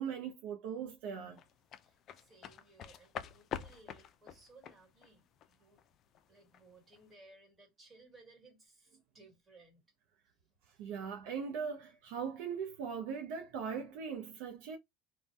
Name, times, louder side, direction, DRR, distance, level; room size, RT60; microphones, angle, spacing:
voice 1, 0.0-1.4 10.8-14.8, right 6 dB, 75° right, 0.5 m, -40 dB
sound 1, 1.4-6.6 6.9-7.1, left 9 dB, 45° left, 0.3 m, -46 dB
voice 2, 1.7-5.8 6.3-9.8, right 3 dB, 25° right, 1.6 m, -61 dB
2.5 x 2.1 x 3.2 m
supercardioid pair, 110°, 0 cm